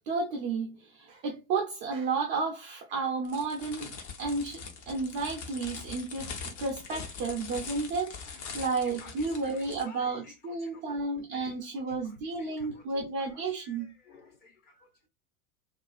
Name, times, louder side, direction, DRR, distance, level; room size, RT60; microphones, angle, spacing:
voice 1, 0.1-4.6 4.9-13.9, right 4 dB, 20° right, 0.4 m, -32 dB
sound 1, 3.2-9.9, left 5 dB, 50° left, 0.9 m, -42 dB
voice 2, 8.5-11.5 11.9-12.9 13.2-14.7, left 4 dB, 25° left, 0.6 m, -54 dB
2.4 x 2.3 x 2.3 m
figure-of-eight pair, 95°, 42 cm